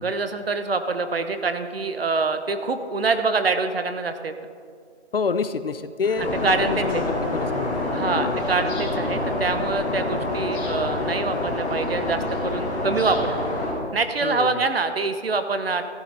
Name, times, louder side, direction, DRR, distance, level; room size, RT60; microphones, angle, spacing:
voice 1, 0.0-4.3 6.4-7.1 7.9-13.4 13.9-15.8, right 4 dB, 60° right, 9 dB, 1.0 m, -25 dB
voice 2, 5.1-7.0 7.3-8.4 14.2-14.6, left 5 dB, 55° left, 12 dB, 0.6 m, -28 dB
sound 1, 6.1-13.7, left 2 dB, 10° left, 2.2 m, -27 dB
13.5 x 10.5 x 4.0 m, 2.1 s
figure-of-eight pair, 160°, 34 cm